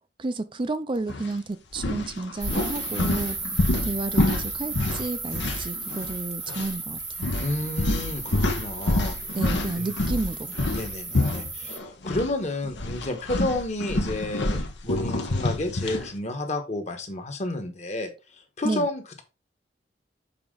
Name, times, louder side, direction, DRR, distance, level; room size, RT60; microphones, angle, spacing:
voice 1, 0.2-7.3 9.3-10.5 18.6-18.9, right 2 dB, 30° right, 0.4 m, -31 dB
sound 1, 1.1-1.3 1.7-6.2 6.5-6.7 7.2-12.3 12.6-16.1, left 2 dB, 85° left, 1.2 m, -27 dB
sound 2, 2.4-11.8, right 3 dB, 10° right, 0.9 m, -35 dB
voice 2, 7.4-9.2 9.8-10.2 10.7-19.2, left 1 dB, 40° left, 1.3 m, -31 dB
7.1 x 4.2 x 3.8 m
head